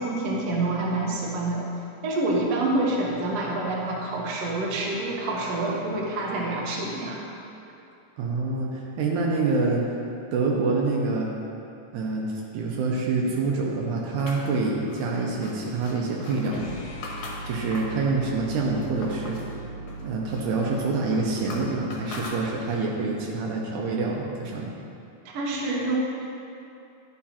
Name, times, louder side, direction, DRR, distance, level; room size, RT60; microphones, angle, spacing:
voice 1, 0.0-1.6 2.0-7.2 25.3-26.0, right 2 dB, 65° right, -3 dB, 1.8 m, -27 dB
voice 2, 8.2-9.8 10.3-11.3 11.9-16.8 17.5-19.4 20.0-24.7, right 3 dB, 80° right, -2 dB, 2.1 m, -26 dB
sound 1, 14.2-18.0 18.5-19.5 19.9-22.9, left 3 dB, 85° left, 2.6 m, -41 dB
sound 2, 16.4-22.5, right 2 dB, 70° left, 2.4 m, -39 dB
10.5 x 5.6 x 2.8 m, 2.6 s
omnidirectional pair, 3.7 m